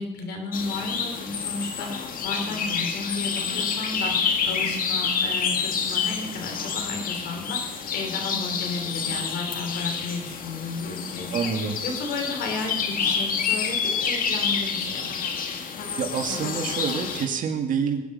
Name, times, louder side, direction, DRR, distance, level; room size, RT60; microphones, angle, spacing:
voice 1, 0.0-11.3 11.6-15.2, left 3 dB, 75° left, 4 dB, 3.1 m, -33 dB
sound 1, 0.5-17.3, left 6 dB, 55° left, 1.9 m, -28 dB
voice 2, 11.3-11.8 16.0-18.0, right 6 dB, 50° right, 3 dB, 2.2 m, -27 dB
21.5 x 9.6 x 5.5 m, 1.1 s
cardioid pair, 110°, 17 cm